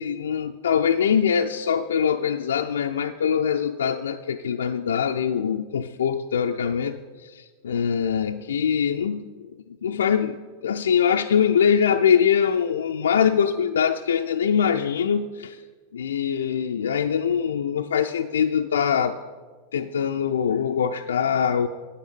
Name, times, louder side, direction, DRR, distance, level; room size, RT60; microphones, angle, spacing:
voice 1, 0.0-9.3 9.8-10.4 10.6-15.6 15.9-19.2 19.7-21.7, left 7 dB, 65° left, 5 dB, 0.4 m, -23 dB
9.4 x 9.3 x 5.3 m, 1.4 s
figure-of-eight pair, 90°, 0 cm